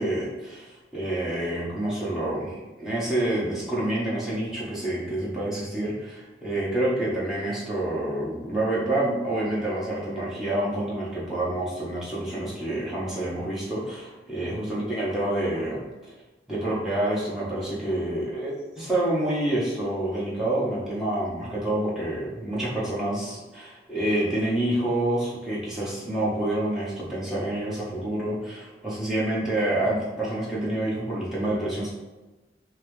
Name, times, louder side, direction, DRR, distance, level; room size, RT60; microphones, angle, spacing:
voice 1, 0.0-15.8 16.5-31.9, right 1 dB, ahead, -9 dB, 1.2 m, -28 dB
5.6 x 2.0 x 3.2 m, 1.1 s
head